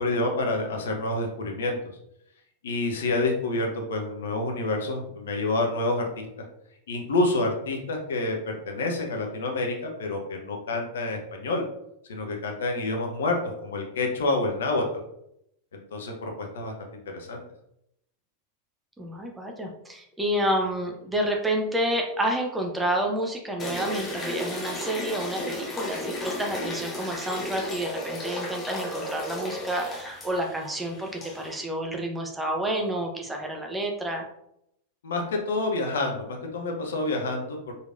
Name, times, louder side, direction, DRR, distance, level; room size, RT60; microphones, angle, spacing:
voice 1, 0.0-1.8 2.6-6.5 6.9-11.6 12.1-15.0 15.7-16.7 17.1-17.4 35.0-37.7, left 2 dB, 65° left, 2 dB, 0.9 m, -28 dB
voice 2, 19.0-34.3, right 1 dB, 10° right, 1 dB, 0.8 m, -29 dB
sound 1, 23.6-31.6, left 1 dB, 20° left, 1.0 m, -34 dB
4.9 x 4.1 x 2.5 m, 0.78 s
figure-of-eight pair, 90°, 0 cm